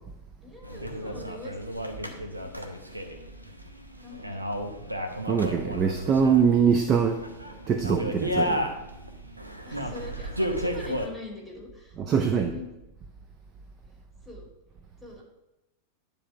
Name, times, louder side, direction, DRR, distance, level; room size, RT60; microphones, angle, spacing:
voice 1, 0.4-1.6 1.9-2.5 2.9-3.2 4.0-4.3 9.7-12.0 12.2-12.7 14.3-14.5 15.0-15.2, left 3 dB, 10° right, -3 dB, 2.7 m, -43 dB
sound 1, 0.6-11.1, equal, 85° right, 0.8 m, -33 dB
voice 2, 5.3-7.2 7.7-8.7 12.0-12.5, right 6 dB, 30° right, 7 dB, 0.6 m, -23 dB
9.8 x 3.5 x 6.0 m, 0.94 s
figure-of-eight pair, 90°, 0 cm